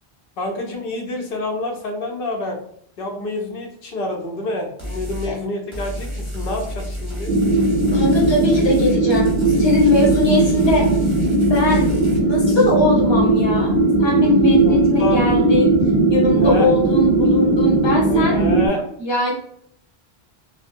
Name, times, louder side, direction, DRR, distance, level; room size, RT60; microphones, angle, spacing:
voice 1, 0.4-2.6 3.0-7.4 14.6-15.2 16.4-16.7 18.1-18.9, left 2 dB, 65° left, 1 dB, 0.8 m, -27 dB
sound 1, 4.8-5.3 5.7-12.2, equal, 20° right, 0.6 m, -30 dB
sound 2, 7.3-18.7, right 2 dB, 60° right, 0.6 m, -17 dB
voice 2, 7.8-10.9 11.5-15.8 16.1-18.5 19.0-19.3, left 1 dB, 30° left, -3 dB, 0.8 m, -20 dB
2.3 x 2.0 x 2.5 m, 0.67 s
omnidirectional pair, 1.1 m